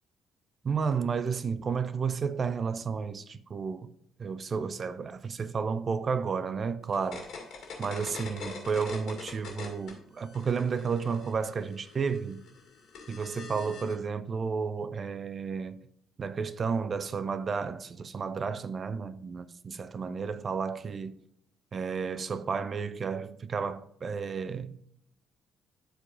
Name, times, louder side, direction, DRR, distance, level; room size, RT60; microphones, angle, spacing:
voice 1, 0.6-3.9 4.2-7.3 7.8-12.4 13.1-15.8 16.2-21.2 21.7-24.8, right 5 dB, 40° right, 0.5 m, -32 dB
sound 1, 6.9-9.9 10.2-14.0, left 5 dB, 60° left, 2.1 m, -43 dB
11.5 x 4.6 x 2.6 m
figure-of-eight pair, 45°, 0 cm